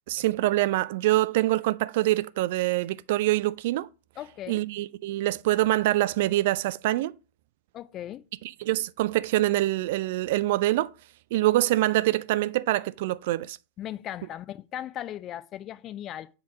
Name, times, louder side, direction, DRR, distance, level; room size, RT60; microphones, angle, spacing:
voice 1, 0.1-3.9 4.5-7.1 8.6-10.9 11.3-13.6, right 16 dB, 50° right, 0.3 m, -25 dB
voice 2, 4.2-4.6 7.7-8.2 13.8-16.3, left 12 dB, 30° left, 0.4 m, -37 dB
7.3 x 2.9 x 4.9 m
figure-of-eight pair, 90°, 0 cm